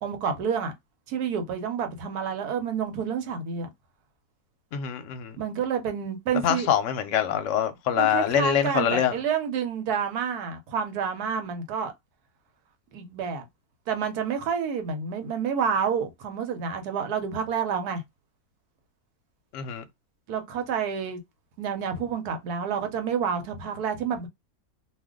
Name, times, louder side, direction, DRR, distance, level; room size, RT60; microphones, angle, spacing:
voice 1, 0.0-0.7 1.1-3.7 5.4-6.7 8.0-11.9 12.9-13.5 13.9-18.0 20.3-21.2 21.6-24.3, right 7 dB, 90° right, 1.3 m, -29 dB
voice 2, 4.7-5.4 6.4-9.2 19.5-19.8, left 9 dB, 65° left, 0.9 m, -24 dB
2.5 x 2.5 x 3.6 m
omnidirectional pair, 1.6 m